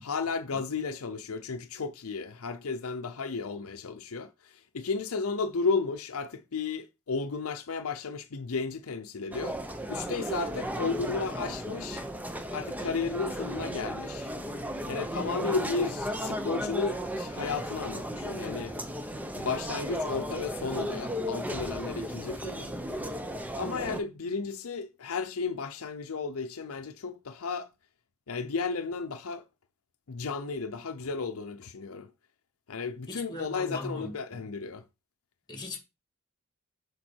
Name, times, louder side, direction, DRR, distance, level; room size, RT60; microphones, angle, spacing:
voice 1, 0.0-12.1 12.5-14.3 14.9-18.7 19.4-22.7 23.5-27.7 28.3-29.4 30.1-32.1 32.7-34.9, left 4 dB, 80° left, 0.6 m, -33 dB
sound 1, 9.3-24.0, equal, 10° right, 0.8 m, -35 dB
voice 2, 33.1-34.5 35.5-35.8, left 2 dB, 20° left, 2.2 m, -39 dB
7.4 x 5.2 x 4.5 m
head